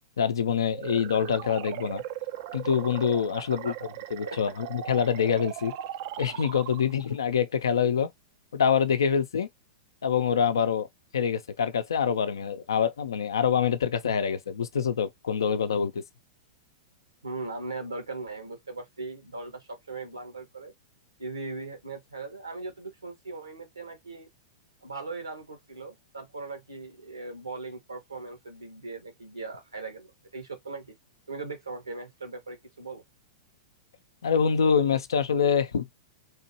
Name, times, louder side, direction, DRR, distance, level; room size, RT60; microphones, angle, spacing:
voice 1, 0.2-2.0 2.5-3.7 4.1-5.7 6.2-8.1 8.5-9.5 10.0-10.9 11.1-16.0 34.2-35.9, left 7 dB, 70° left, 0.6 m, -25 dB
sound 1, 0.7-7.2, right 11 dB, 50° right, 0.5 m, -38 dB
voice 2, 3.3-3.8 4.2-4.5 17.2-20.7 21.2-24.3 24.8-30.9 31.3-33.0, right 3 dB, 85° right, 1.6 m, -39 dB
3.3 x 3.0 x 2.8 m
figure-of-eight pair, 100°, 2 cm